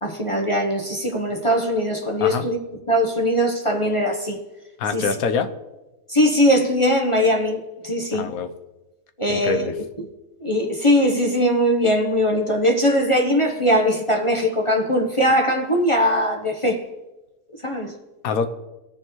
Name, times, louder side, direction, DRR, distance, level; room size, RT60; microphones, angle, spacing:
voice 1, 0.0-2.6 2.9-4.4 4.9-5.1 6.1-8.3 9.2-9.7 10.4-16.8 17.6-17.9, equal, 25° left, 0.8 m, -20 dB
voice 2, 4.8-5.5 8.1-8.5 9.3-9.7 18.2-18.5, left 5 dB, 80° left, 1.2 m, -24 dB
18.5 x 6.9 x 3.1 m
omnidirectional pair, 1.5 m